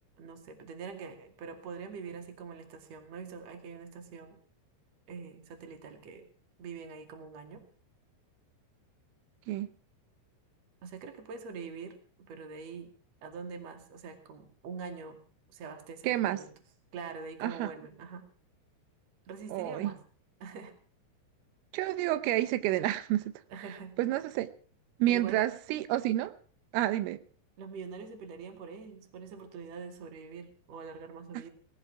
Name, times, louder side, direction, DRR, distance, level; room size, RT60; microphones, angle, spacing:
voice 1, 0.2-4.4 5.1-6.3 6.6-7.7 10.8-12.0 12.3-12.9 13.2-15.2 15.5-16.5 16.9-18.2 19.3-20.0 20.4-20.7 23.5-23.9 25.1-25.5 27.6-31.5, right 5 dB, 45° right, 2.6 m, -44 dB
voice 2, 16.0-16.4 17.4-17.7 19.5-19.9 21.7-23.3 24.0-24.5 25.0-26.3 26.7-27.2, right 14 dB, 90° right, 3.5 m, -29 dB
19.0 x 14.0 x 4.7 m
omnidirectional pair, 5.7 m